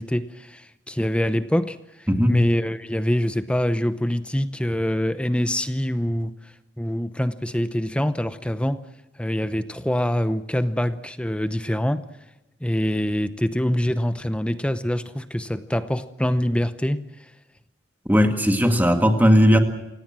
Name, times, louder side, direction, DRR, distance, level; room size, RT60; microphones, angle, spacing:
voice 1, 0.0-8.8 9.2-12.0 12.6-17.0, equal, 5° left, 11 dB, 0.8 m, -25 dB
voice 2, 18.1-19.6, equal, 10° right, 5 dB, 2.1 m, -17 dB
27.0 x 18.0 x 7.6 m, 0.94 s
head